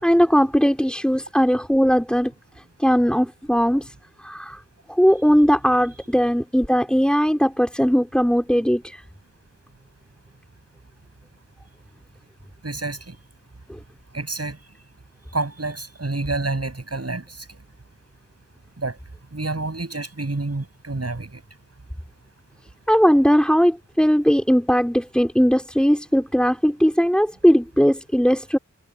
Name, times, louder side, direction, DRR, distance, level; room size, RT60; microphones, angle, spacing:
voice 1, 0.0-2.3 2.8-3.9 4.2-4.6 4.9-9.0 13.7-13.8 22.9-28.6, equal, 5° left, 5.3 m, -19 dB
voice 2, 12.6-13.2 14.1-14.6 15.3-17.6 18.8-19.0 19.3-21.4, right 2 dB, 50° right, 8.0 m, -28 dB
wide cardioid pair, 55°, 31 cm